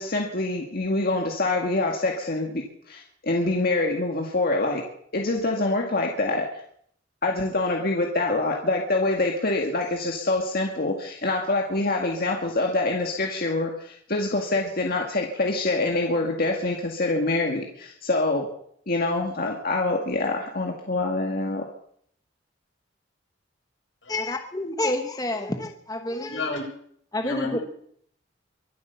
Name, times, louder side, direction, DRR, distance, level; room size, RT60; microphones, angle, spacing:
voice 1, 0.0-4.8 5.1-6.5 7.2-18.5 18.9-21.6, left 2 dB, 50° left, 1 dB, 2.0 m, -25 dB
voice 2, 24.1-26.5 27.1-27.6, left 2 dB, 20° left, 4 dB, 1.3 m, -29 dB
voice 3, 26.3-26.6 27.2-27.6, left 2 dB, 85° left, -2 dB, 7.8 m, -30 dB
24.0 x 8.3 x 7.1 m, 0.66 s
head